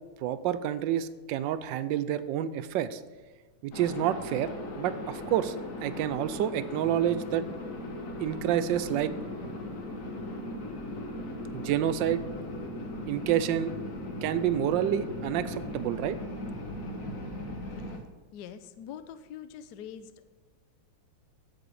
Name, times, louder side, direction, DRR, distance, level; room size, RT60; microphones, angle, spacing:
voice 1, 0.2-3.0 3.6-4.5 4.8-5.6 5.8-7.4 8.2-9.1 11.5-12.2 13.1-13.7 14.2-16.2, right 10 dB, 75° right, 14 dB, 1.2 m, -28 dB
sound 1, 3.7-18.0, left 1 dB, 45° left, 1.5 m, -38 dB
voice 2, 18.3-20.4, left 9 dB, 70° left, 11 dB, 1.0 m, -44 dB
12.0 x 7.6 x 4.8 m, 1.3 s
omnidirectional pair, 2.3 m